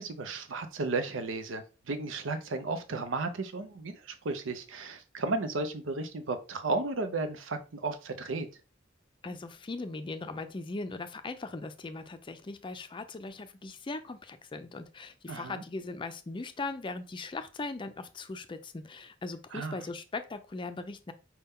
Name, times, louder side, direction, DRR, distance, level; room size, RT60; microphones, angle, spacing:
voice 1, 0.0-8.5 15.3-15.6 19.5-19.8, right 3 dB, 85° right, 0.7 m, -34 dB
voice 2, 9.2-21.1, left 3 dB, 25° left, 0.4 m, -39 dB
5.5 x 2.2 x 3.6 m
head